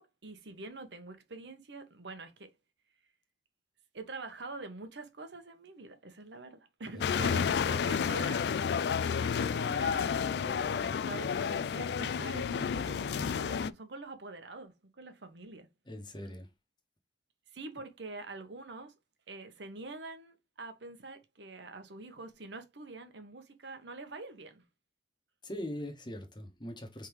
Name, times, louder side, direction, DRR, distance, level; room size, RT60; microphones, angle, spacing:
voice 1, 0.0-2.5 3.9-8.5 8.9-15.7 17.5-18.9 19.3-24.6, right 3 dB, 80° right, 1.0 m, -46 dB
sound 1, 7.0-13.7, left 6 dB, 65° left, 0.3 m, -31 dB
voice 2, 15.9-16.5 25.4-27.1, left 1 dB, 25° left, 1.1 m, -41 dB
4.8 x 3.6 x 3.0 m
head